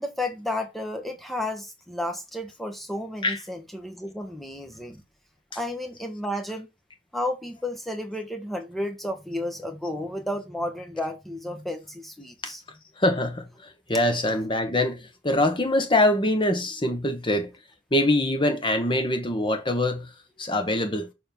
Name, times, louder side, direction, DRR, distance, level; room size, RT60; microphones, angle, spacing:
voice 1, 0.0-5.0 5.5-6.7 7.1-12.6, left 1 dB, ahead, 1.1 m, -32 dB
voice 2, 13.0-13.5 13.9-17.5 17.9-20.1 20.4-21.1, left 1 dB, 25° left, 1.2 m, -23 dB
6.9 x 3.8 x 5.4 m
head